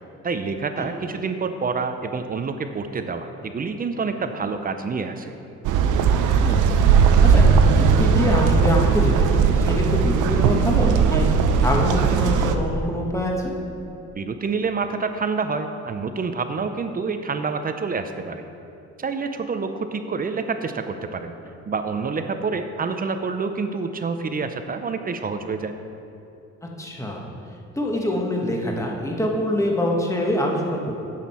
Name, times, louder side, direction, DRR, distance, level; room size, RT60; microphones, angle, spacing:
voice 1, 0.2-5.4 14.2-18.4 19.0-21.3 21.7-25.7, right 4 dB, 30° right, 8 dB, 0.6 m, -27 dB
sound 1, 5.6-12.5, right 6 dB, 90° right, 0.6 m, -18 dB
voice 2, 6.4-6.7 7.2-11.3 11.6-13.5 26.8-27.3 27.8-30.9, left 1 dB, 10° left, 0 dB, 1.2 m, -25 dB
10.0 x 7.4 x 4.3 m, 2.8 s
cardioid pair, 115°, 30 cm